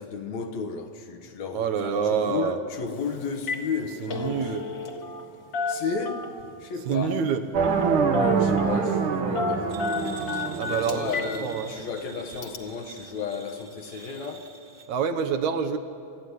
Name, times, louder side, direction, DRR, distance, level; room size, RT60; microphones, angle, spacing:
voice 1, 0.0-4.5 5.7-6.3 6.6-7.2 8.1-14.5, left 5 dB, 70° left, 2.5 m, -34 dB
voice 2, 1.5-2.6 4.0-4.7 6.9-7.4 10.6-11.1 11.4-11.7 14.9-15.8, right 7 dB, 75° right, 2.5 m, -26 dB
Telephone, 2.9-3.0 3.3-3.7 4.0-5.2 5.5-6.5 7.6-7.9 8.1-8.8 9.4-11.3 11.7-11.8 12.4-12.6, left 4 dB, 45° left, 2.1 m, -31 dB
sound 1, 7.5-11.6, right 5 dB, 55° right, 1.6 m, -25 dB
sound 2, 9.7-14.9, right 4 dB, 25° right, 1.3 m, -46 dB
26.5 x 13.5 x 9.7 m
omnidirectional pair, 3.4 m